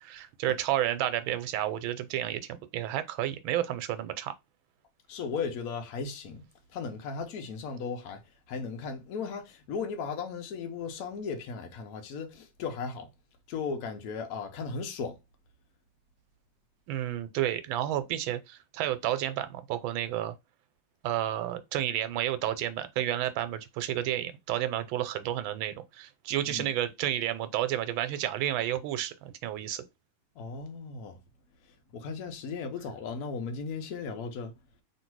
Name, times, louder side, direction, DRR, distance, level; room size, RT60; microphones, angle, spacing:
voice 1, 0.0-4.3 16.9-20.3 21.0-29.8, right 12 dB, 85° right, 1.4 m, -31 dB
voice 2, 5.1-6.5 6.7-13.1 13.5-15.2 26.4-26.7 30.4-31.2 31.9-34.5, left 5 dB, 60° left, 1.1 m, -36 dB
3.2 x 2.7 x 4.5 m
omnidirectional pair, 2.1 m